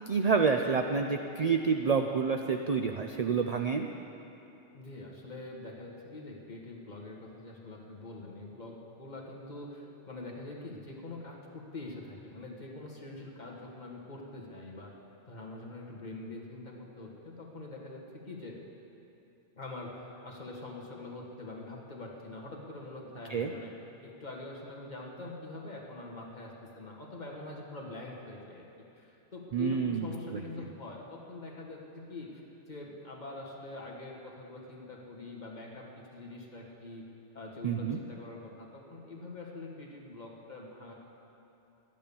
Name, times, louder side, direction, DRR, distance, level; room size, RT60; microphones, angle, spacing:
voice 1, 0.1-3.9 23.3-23.5 29.5-30.1 30.3-30.4 37.6-38.0, right 5 dB, 50° right, 5 dB, 0.4 m, -28 dB
voice 2, 4.7-14.9 15.3-18.6 19.5-23.7 24.0-28.6 29.0-35.9 36.1-37.0 37.3-40.9, left 2 dB, 35° left, -2 dB, 1.8 m, -44 dB
12.5 x 10.5 x 7.0 m, 2.9 s
omnidirectional pair, 1.3 m